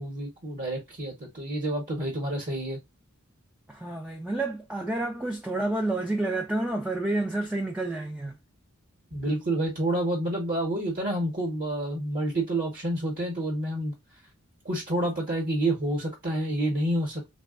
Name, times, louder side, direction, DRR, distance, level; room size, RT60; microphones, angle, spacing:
voice 1, 0.0-2.8 9.1-14.0 14.6-17.3, right 1 dB, 45° right, 1.0 m, -29 dB
voice 2, 3.7-8.4, right 2 dB, 5° right, 0.3 m, -29 dB
3.2 x 2.3 x 2.3 m
head